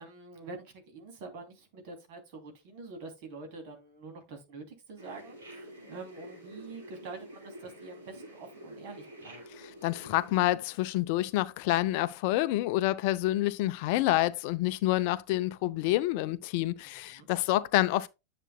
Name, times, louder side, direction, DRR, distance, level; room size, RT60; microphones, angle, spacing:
voice 1, 0.0-9.4 17.1-17.3, right 3 dB, 45° right, 2.9 m, -46 dB
sound 1, 5.0-10.4, right 1 dB, 70° right, 5.5 m, -48 dB
voice 2, 9.5-18.1, left 16 dB, 45° left, 0.5 m, -28 dB
10.0 x 6.9 x 2.2 m
figure-of-eight pair, 90°, 0 cm